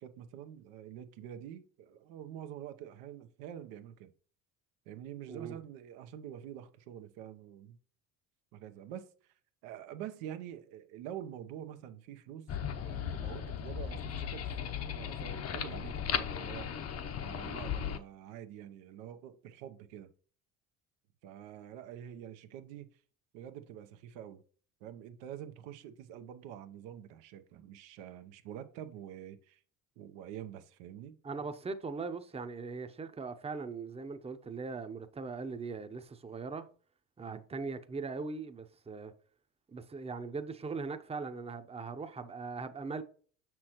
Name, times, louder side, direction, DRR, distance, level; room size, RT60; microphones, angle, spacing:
voice 1, 0.0-4.1 4.9-7.8 8.5-9.3 9.6-12.5 12.8-16.7 17.2-20.1 21.2-22.9 23.3-24.4 24.8-29.6 30.0-31.1 37.3-37.4, right 10 dB, 85° right, 0.8 m, -46 dB
voice 2, 5.3-5.6 31.2-36.7 37.2-39.1 39.7-43.0, right 4 dB, 15° right, 0.7 m, -40 dB
sound 1, 12.5-18.0, left 8 dB, 40° left, 0.8 m, -37 dB
6.3 x 6.0 x 3.0 m
supercardioid pair, 85°, 38 cm